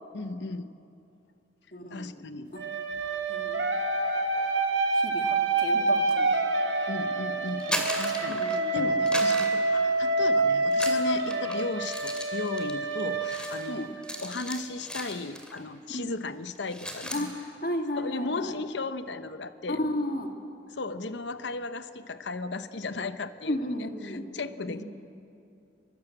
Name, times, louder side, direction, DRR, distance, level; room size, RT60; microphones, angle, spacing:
voice 1, 0.1-0.7 1.9-2.5 6.9-13.9 14.2-17.3 18.0-19.8 20.7-24.8, left 3 dB, 75° left, 12 dB, 0.9 m, -36 dB
voice 2, 1.7-2.1 2.5-2.6 3.3-3.6 4.9-6.3 8.2-8.7 11.2-11.3 13.7-13.8 15.9-16.0 17.1-18.6 19.7-20.3 23.5-24.3 24.7-24.8, left 1 dB, 50° left, 4 dB, 2.0 m, -33 dB
sound 1, 2.5-14.4, right 2 dB, 80° right, 2.5 m, -27 dB
sound 2, 7.5-8.7 9.1-10.3 10.7-15.6 15.9-16.2 16.5-17.3, equal, 5° left, 2.3 m, -37 dB
Drum, 8.8-10.8, equal, 50° right, 3.3 m, -45 dB
23.5 x 23.5 x 7.9 m, 2.6 s
head